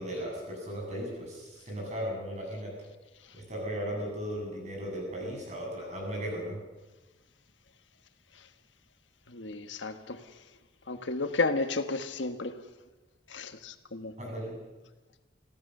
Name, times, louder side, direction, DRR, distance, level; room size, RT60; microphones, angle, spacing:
voice 1, 0.0-2.7 3.3-6.6 14.2-14.6, equal, 40° right, -1 dB, 7.9 m, -36 dB
voice 2, 9.3-10.2 10.9-12.5 13.3-14.1, left 3 dB, 90° left, 9 dB, 1.4 m, -32 dB
26.0 x 15.5 x 6.7 m, 1.2 s
head